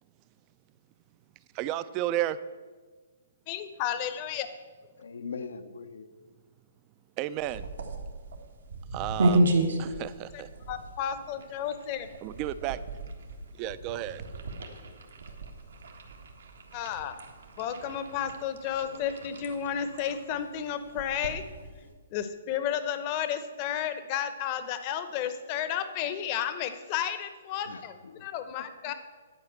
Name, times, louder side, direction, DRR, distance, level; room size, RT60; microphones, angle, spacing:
voice 1, 1.6-2.4 7.2-7.6 8.9-9.5 9.8-10.5 12.2-12.8 13.6-14.2, right 13 dB, 30° right, 15 dB, 0.4 m, -32 dB
voice 2, 3.5-4.5 10.3-12.1 16.7-17.1 17.6-21.4 22.1-28.0 28.2-28.9, left 9 dB, 35° left, 10 dB, 0.8 m, -32 dB
voice 3, 5.0-6.1 27.7-28.3 28.6-28.9, left 5 dB, 85° left, 9 dB, 0.8 m, -41 dB
sound 1, 7.4-21.9, right 2 dB, 80° right, 1.5 m, -33 dB
10.5 x 4.8 x 7.9 m, 1.4 s
hypercardioid pair, 150°, 0 cm